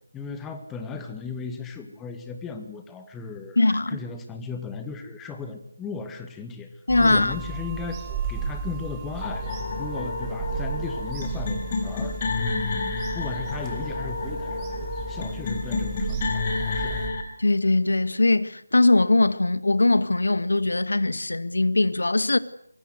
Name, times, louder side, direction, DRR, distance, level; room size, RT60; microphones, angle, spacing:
voice 1, 0.1-6.7 7.0-8.0 8.3-9.5 9.8-14.7 15.1-17.0, left 5 dB, 5° left, 2.0 m, -36 dB
voice 2, 3.6-4.0 6.9-7.3 17.4-22.4, left 2 dB, 70° left, 1.9 m, -21 dB
Bird vocalization bird call bird song / Telephone, 6.9-17.1, right 5 dB, 15° right, 2.4 m, -35 dB
sound 1, 9.2-17.2, left 3 dB, 30° left, 4.8 m, -30 dB
25.0 x 22.5 x 8.1 m
figure-of-eight pair, 160°, 0 cm